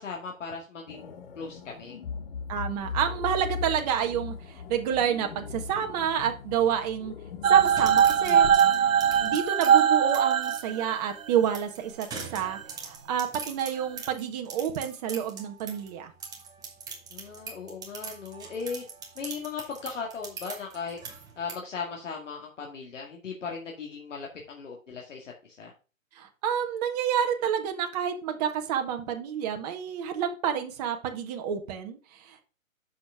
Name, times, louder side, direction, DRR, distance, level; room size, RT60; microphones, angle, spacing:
voice 1, 0.0-2.0 17.1-18.8 19.2-21.0 21.4-25.7, left 5 dB, 60° left, 0 dB, 2.3 m, -37 dB
sound 1, 0.9-9.4, left 5 dB, 45° left, 1.2 m, -39 dB
voice 2, 2.5-7.1 7.5-8.5 9.2-12.1 12.3-16.1 26.1-32.4, right 9 dB, 30° right, 5 dB, 1.6 m, -29 dB
sound 2, 7.4-11.3 12.4-12.6, right 8 dB, 70° right, 0.9 m, -21 dB
sound 3, 7.6-10.6 11.4-15.9 16.2-21.5, right 5 dB, 10° right, 1.3 m, -42 dB
7.7 x 7.0 x 3.6 m, 0.34 s
hypercardioid pair, 140°, 41 cm